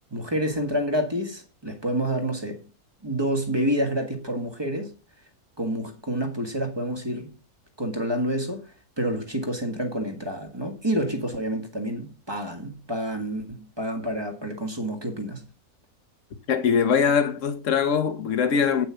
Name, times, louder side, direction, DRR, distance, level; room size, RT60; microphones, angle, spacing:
voice 1, 0.1-2.6 3.0-4.9 5.6-7.3 7.8-15.5, equal, 15° right, 1.6 m, -28 dB
voice 2, 16.5-18.9, left 6 dB, 60° left, 1.4 m, -22 dB
9.1 x 6.1 x 5.7 m
omnidirectional pair, 1.6 m